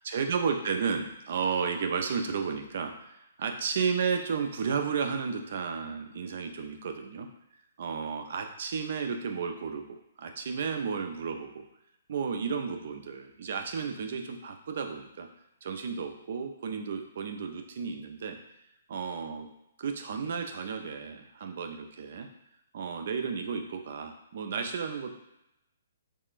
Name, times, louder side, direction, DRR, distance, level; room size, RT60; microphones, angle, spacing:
voice 1, 0.1-7.3 7.8-11.6 12.1-15.3 15.6-18.4 18.9-19.5 19.8-22.3 22.7-25.2, right 6 dB, 60° right, 6 dB, 0.4 m, -33 dB
3.6 x 3.3 x 2.4 m, 0.87 s
hypercardioid pair, 130°, 0 cm